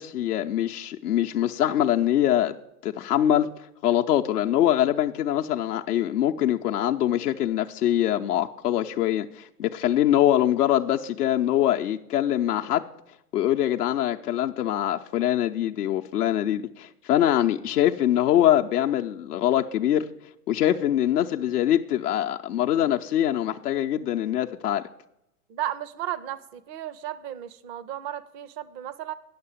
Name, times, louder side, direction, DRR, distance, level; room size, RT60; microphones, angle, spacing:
voice 1, 0.0-2.6 2.8-3.5 3.8-12.9 13.3-20.1 20.5-24.8, left 11 dB, 75° left, 0.7 m, -23 dB
voice 2, 25.5-29.1, right 12 dB, 25° right, 0.4 m, -34 dB
9.5 x 6.7 x 7.1 m
hypercardioid pair, 115°, 46 cm